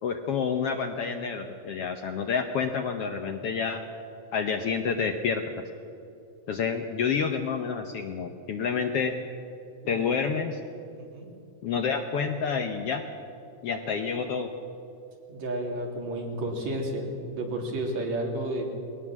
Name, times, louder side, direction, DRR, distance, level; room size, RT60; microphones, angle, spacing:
voice 1, 0.0-3.8 4.3-5.4 6.5-9.1 9.9-10.6 11.6-13.0 13.6-14.5, left 6 dB, 65° left, 6 dB, 1.6 m, -28 dB
voice 2, 10.9-11.3 15.3-18.6, right 1 dB, 60° right, 0 dB, 4.2 m, -32 dB
20.5 x 19.0 x 7.3 m, 2.8 s
omnidirectional pair, 3.5 m